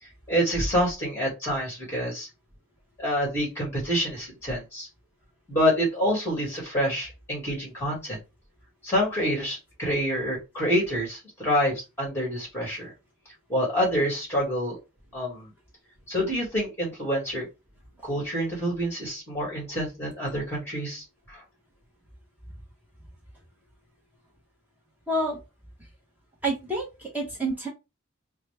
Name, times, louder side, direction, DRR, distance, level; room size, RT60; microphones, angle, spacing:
voice 1, 0.0-2.3 3.0-4.9 5.5-8.2 8.8-12.9 13.5-14.8 15.1-15.5 16.1-17.5 18.0-21.4, equal, 10° left, -3 dB, 2.2 m, -27 dB
voice 2, 25.1-25.4 26.4-27.7, right 1 dB, 10° right, -3 dB, 1.0 m, -28 dB
4.8 x 2.3 x 3.3 m, 0.25 s
head